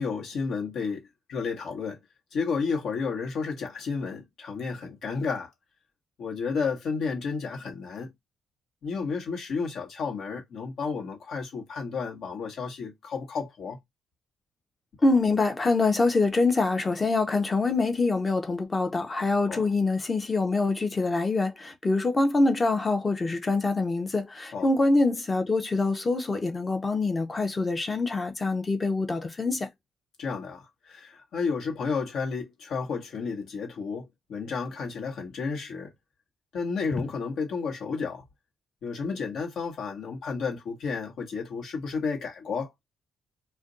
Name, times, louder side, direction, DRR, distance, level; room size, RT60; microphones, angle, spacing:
voice 1, 0.0-2.0 2.3-5.5 6.2-8.1 8.8-13.8 19.5-19.7 24.5-24.7 30.2-35.9 36.5-38.2 38.8-42.7, left 5 dB, 70° left, 1.1 m, -32 dB
voice 2, 15.0-29.7, left 3 dB, 30° left, 0.6 m, -25 dB
2.5 x 2.1 x 3.7 m
cardioid pair, 90°, 0 cm